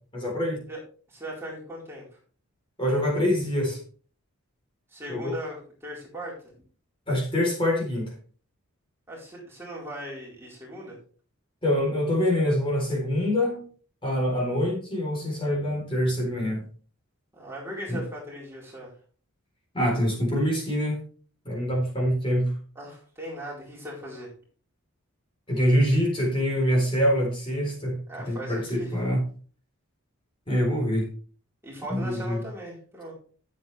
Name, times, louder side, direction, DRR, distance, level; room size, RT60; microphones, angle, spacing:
voice 1, 0.1-0.6 2.8-3.8 5.1-5.3 7.1-8.1 11.6-13.7 14.0-16.6 17.9-18.0 19.7-21.0 21.5-22.5 25.5-28.0 28.3-29.2 30.5-31.1 31.9-32.4, equal, 25° left, -2 dB, 4.0 m, -25 dB
voice 2, 1.1-2.1 4.9-6.3 9.1-11.0 17.3-18.9 22.7-24.3 28.1-29.0 31.6-33.1, equal, 10° right, -5 dB, 4.3 m, -38 dB
13.0 x 7.6 x 3.4 m, 0.41 s
head